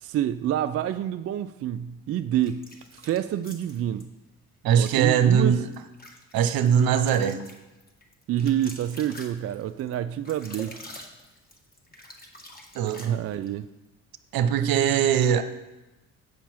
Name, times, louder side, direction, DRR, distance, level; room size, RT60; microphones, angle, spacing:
voice 1, 0.0-4.1 4.7-5.5 8.3-10.8 13.0-13.7, right 11 dB, 35° right, 0.4 m, -28 dB
sound 1, 2.4-4.1 4.7-5.0 5.5-13.5, left 1 dB, 20° left, 1.8 m, -46 dB
voice 2, 4.6-5.6 6.3-7.4 12.7-13.2 14.3-15.4, right 8 dB, 55° right, 0.8 m, -21 dB
8.3 x 7.2 x 4.4 m
hypercardioid pair, 50°, 42 cm